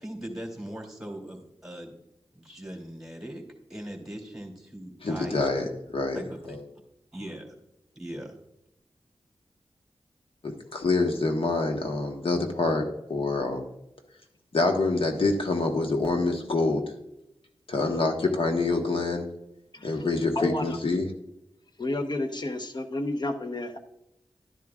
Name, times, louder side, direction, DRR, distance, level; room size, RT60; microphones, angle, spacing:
voice 1, 0.0-1.9 2.3-3.4 3.7-5.6 6.1-6.6 7.1-7.6 8.0-8.4, right 1 dB, 5° right, -1 dB, 2.8 m, -40 dB
voice 2, 5.0-5.6 5.9-6.2 6.5-6.6 10.4-13.7 14.5-16.8 17.7-19.3 19.8-21.1, left 3 dB, 65° left, 3 dB, 1.3 m, -26 dB
voice 3, 19.7-20.1 20.4-20.8 21.8-23.8, left 2 dB, 45° left, 6 dB, 1.0 m, -31 dB
11.5 x 10.5 x 2.5 m, 0.85 s
cardioid pair, 50°, 10 cm